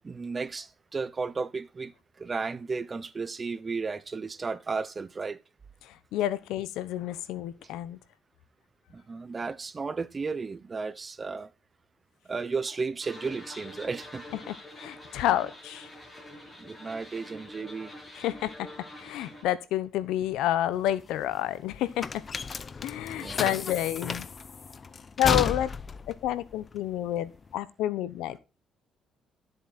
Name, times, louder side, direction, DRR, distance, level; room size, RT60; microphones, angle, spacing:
voice 1, 0.0-5.4 8.9-11.5 12.3-14.3 16.6-17.9 23.2-23.6, right 4 dB, 30° right, 0.9 m, -34 dB
voice 2, 5.8-8.0 14.5-15.9 18.1-22.2 22.8-24.3 25.2-25.7 26.2-28.4, left 12 dB, 85° left, 1.0 m, -29 dB
sound 1, 13.0-19.4, left 1 dB, 20° left, 7.6 m, -46 dB
sound 2, 20.7-27.5, left 5 dB, 35° left, 0.7 m, -33 dB
13.0 x 8.0 x 4.3 m
cardioid pair, 90°, 0 cm